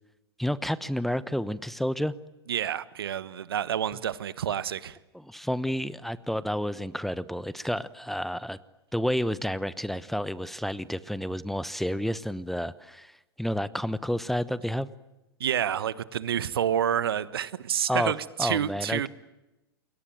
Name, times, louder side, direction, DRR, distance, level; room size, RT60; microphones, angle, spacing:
voice 1, 0.4-2.1 5.1-8.6 8.9-13.1 13.4-14.9 17.9-18.1 18.4-19.1, equal, ahead, 1.0 m, -30 dB
voice 2, 2.5-5.0 15.4-19.1, right 9 dB, 70° right, 1.3 m, -28 dB
28.5 x 22.5 x 9.2 m
figure-of-eight pair, 95°, 13 cm